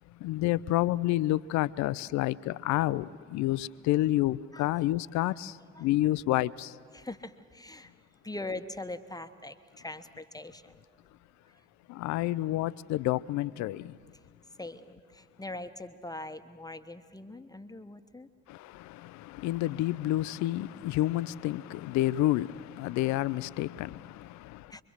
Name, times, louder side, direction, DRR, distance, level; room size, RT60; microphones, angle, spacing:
voice 1, 0.2-5.5 5.8-6.7 11.9-13.9 18.5-24.7, left 16 dB, 55° left, 0.6 m, -29 dB
voice 2, 6.9-7.9 8.2-10.8 14.6-18.3 24.7-24.8, left 2 dB, 10° left, 1.1 m, -42 dB
26.0 x 23.0 x 6.5 m
figure-of-eight pair, 45°, 35 cm